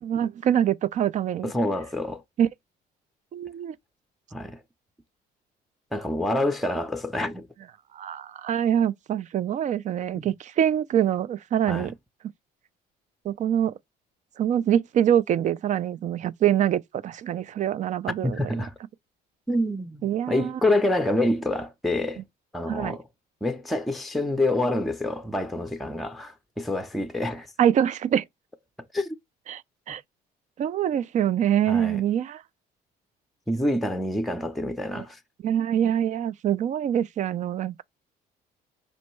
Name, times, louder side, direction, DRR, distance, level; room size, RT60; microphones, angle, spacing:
voice 1, 0.0-1.5 2.4-2.5 3.3-3.8 7.9-11.9 13.2-13.7 14.4-18.5 20.0-20.6 22.7-23.0 27.6-28.2 29.5-29.6 29.9-30.0 30.6-32.4 34.9-35.0 35.4-37.8, right 10 dB, 45° right, 0.4 m, -24 dB
voice 2, 1.4-2.2 4.3-4.6 5.9-7.5 10.2-10.3 11.7-11.9 18.2-18.7 19.5-22.2 22.5-23.0 23.4-27.5 28.9-29.2 31.7-32.0 33.5-35.2, left 1 dB, ahead, 0.6 m, -27 dB
5.3 x 3.3 x 3.1 m
cardioid pair, 110°, 17 cm